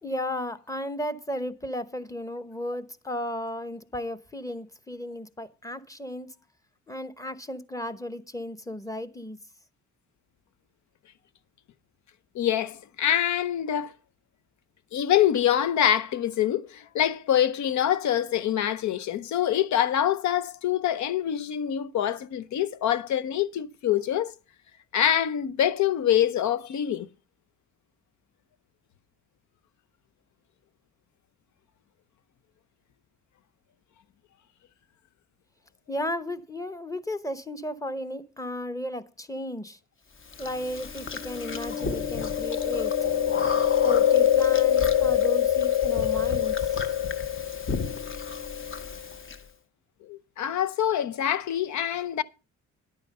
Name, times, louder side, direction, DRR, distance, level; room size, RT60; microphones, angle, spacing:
voice 1, 0.0-6.3 6.9-9.4 35.9-39.8 40.4-42.9 43.8-46.9, left 1 dB, 10° left, 0.9 m, -34 dB
voice 2, 12.3-13.9 14.9-24.3 24.9-27.1 50.1-52.2, left 10 dB, 70° left, 0.7 m, -25 dB
Chewing mastication, 40.4-49.4, left 9 dB, 40° left, 1.2 m, -25 dB
11.0 x 9.0 x 5.4 m
cardioid pair, 90°, 30 cm